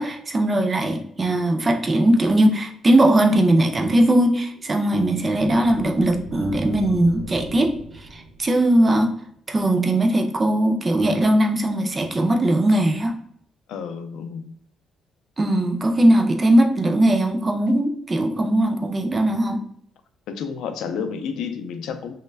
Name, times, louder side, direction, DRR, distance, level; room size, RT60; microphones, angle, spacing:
voice 1, 0.0-7.7 8.1-9.1 9.5-13.1 15.4-19.6, right 1 dB, 20° right, 3 dB, 0.3 m, -19 dB
sound 1, 4.2-9.0, right 1 dB, 90° right, 0.5 m, -40 dB
voice 2, 13.7-14.5 20.3-22.1, left 6 dB, 70° left, 7 dB, 0.4 m, -30 dB
3.1 x 2.2 x 3.3 m, 0.67 s
cardioid pair, 180°, 0 cm